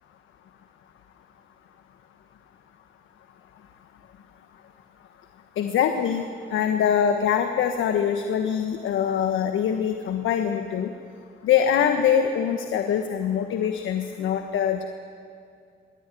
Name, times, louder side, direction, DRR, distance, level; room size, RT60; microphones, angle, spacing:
voice 1, 5.6-6.2 6.5-10.9 11.4-14.9, left 8 dB, 80° left, 6 dB, 1.4 m, -23 dB
25.5 x 21.5 x 9.3 m, 2.4 s
cardioid pair, 90°, 20 cm